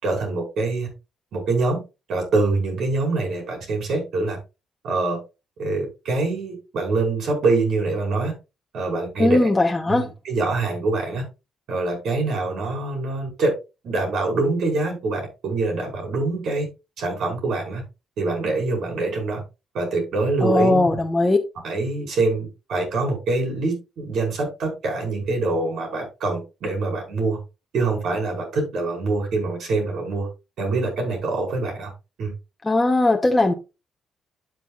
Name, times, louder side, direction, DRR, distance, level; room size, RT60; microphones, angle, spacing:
voice 1, 0.0-0.9 1.3-1.8 2.1-4.4 4.8-5.2 5.6-8.3 8.7-9.5 9.9-11.2 11.7-13.5 13.8-16.7 17.0-17.8 18.2-19.4 19.7-21.0 21.6-27.4 27.7-30.3 30.6-31.9 32.2-32.3, right 3 dB, 70° right, 5.3 m, -24 dB
voice 2, 9.2-10.1 20.4-21.4 32.6-33.5, left 2 dB, 15° left, 1.0 m, -19 dB
12.5 x 5.7 x 2.5 m
cardioid pair, 90°, 0 cm